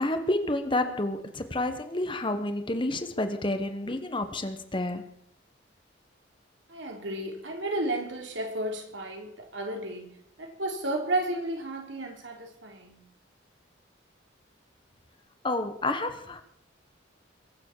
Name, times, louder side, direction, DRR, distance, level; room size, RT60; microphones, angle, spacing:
voice 1, 0.0-5.1 15.4-16.4, left 1 dB, 25° left, 1.4 m, -29 dB
voice 2, 6.7-10.1 10.4-13.0, right 1 dB, 70° right, 3.5 m, -33 dB
22.5 x 7.5 x 7.4 m
head